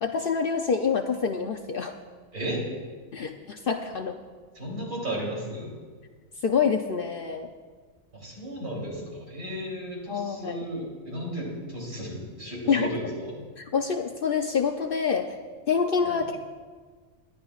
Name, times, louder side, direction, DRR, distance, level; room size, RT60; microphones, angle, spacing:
voice 1, 0.0-2.0 3.1-4.2 6.4-7.5 10.1-10.7 12.7-12.9 13.6-15.4 15.7-16.5, left 6 dB, 55° left, 5 dB, 0.6 m, -26 dB
voice 2, 2.3-2.6 4.6-5.7 8.1-13.4 16.0-16.2, equal, 80° right, -4 dB, 3.8 m, -34 dB
20.0 x 11.5 x 2.4 m, 1.5 s
omnidirectional pair, 1.4 m